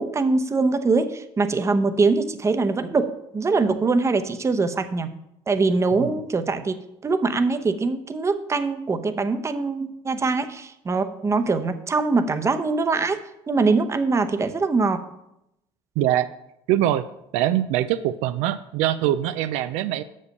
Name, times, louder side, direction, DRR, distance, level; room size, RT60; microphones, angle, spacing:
voice 1, 0.0-5.1 5.5-6.7 7.0-13.2 13.5-15.0, right 3 dB, 25° right, 9 dB, 0.8 m, -23 dB
voice 2, 16.0-16.3 16.7-17.0 17.3-20.0, right 12 dB, 75° right, 11 dB, 0.4 m, -23 dB
6.8 x 5.3 x 6.5 m, 0.83 s
supercardioid pair, 90°, 12 cm